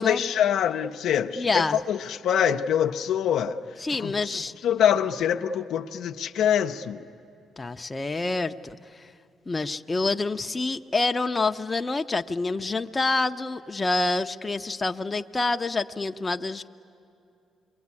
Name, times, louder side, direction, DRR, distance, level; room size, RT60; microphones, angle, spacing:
voice 1, 0.0-3.6 4.0-7.1, left 9 dB, 80° left, 0.7 m, -25 dB
voice 2, 1.3-1.8 3.8-4.5 7.6-8.8 9.5-16.7, left 3 dB, 25° left, 0.7 m, -27 dB
27.0 x 22.5 x 9.7 m
cardioid pair, 90°, 0 cm